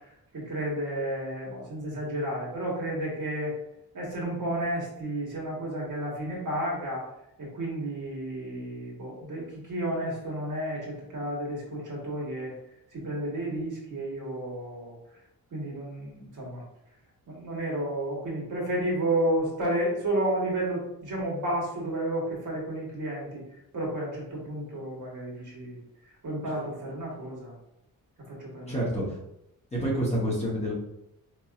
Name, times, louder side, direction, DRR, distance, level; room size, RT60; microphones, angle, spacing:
voice 1, 0.3-3.5 3.9-7.1 7.4-12.5 12.9-15.0 15.5-16.6 17.3-23.4 23.7-25.8 26.2-27.5 28.3-28.8, right 1 dB, 55° right, -3 dB, 1.3 m, -31 dB
voice 2, 28.7-29.0 29.7-30.7, equal, 20° left, -5 dB, 0.9 m, -28 dB
4.6 x 2.8 x 2.3 m, 0.82 s
wide cardioid pair, 170°, 36 cm